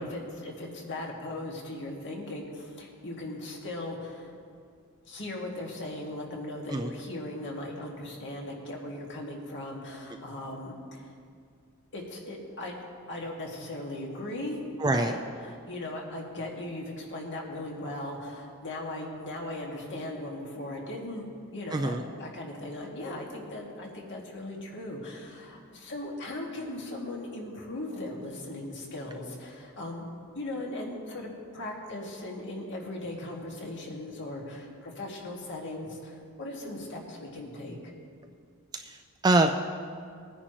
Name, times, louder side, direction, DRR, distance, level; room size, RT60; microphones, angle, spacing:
voice 1, 0.0-4.3 5.1-11.1 11.9-12.8 13.1-21.3 21.5-30.1 30.3-37.9, left 1 dB, 55° left, -1 dB, 2.1 m, -38 dB
voice 2, 14.8-15.1 21.7-22.0 38.7-39.5, right 2 dB, 20° right, 5 dB, 0.4 m, -25 dB
20.5 x 10.0 x 3.1 m, 2.3 s
head